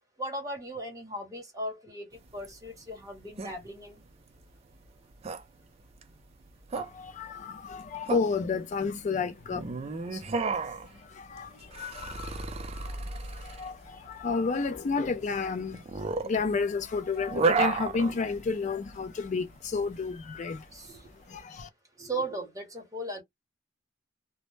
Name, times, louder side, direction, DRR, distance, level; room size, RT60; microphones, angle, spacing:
voice 1, 0.2-2.1 2.3-3.9 20.7-21.0 22.0-23.2, right 1 dB, 20° right, 0.9 m, -37 dB
sound 1, 2.1-21.4, right 4 dB, 35° right, 0.4 m, -34 dB
voice 2, 6.8-10.6 10.9-20.7 21.3-21.7, left 4 dB, 40° left, 0.4 m, -32 dB
2.1 x 2.0 x 3.0 m
head